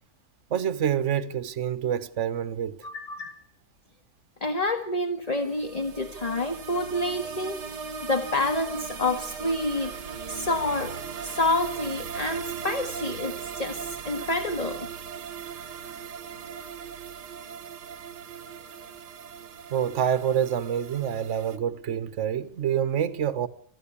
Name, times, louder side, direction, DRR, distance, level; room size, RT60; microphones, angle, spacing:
voice 1, 0.5-2.9 19.7-23.5, right 9 dB, 50° right, 1.4 m, -27 dB
voice 2, 2.8-3.4 4.4-7.7 8.0-9.9 10.3-14.9, left 2 dB, 25° left, 1.7 m, -28 dB
sound 1, 5.3-21.6, right 7 dB, 80° right, 1.7 m, -38 dB
27.0 x 15.5 x 8.6 m
omnidirectional pair, 1.8 m